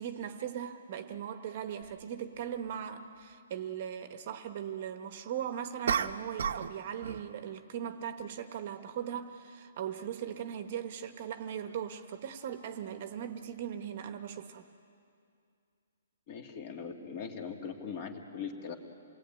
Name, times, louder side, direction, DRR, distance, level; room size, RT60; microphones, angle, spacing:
voice 1, 0.0-14.6, right 9 dB, 35° right, 9 dB, 1.2 m, -39 dB
sound 1, 1.8-1.9 5.9-6.8 7.0-7.3, right 7 dB, 65° right, 1.0 m, -32 dB
voice 2, 16.3-18.8, left 6 dB, 30° left, 4 dB, 2.2 m, -40 dB
28.0 x 19.5 x 9.1 m, 2.4 s
hypercardioid pair, 170°, 0 cm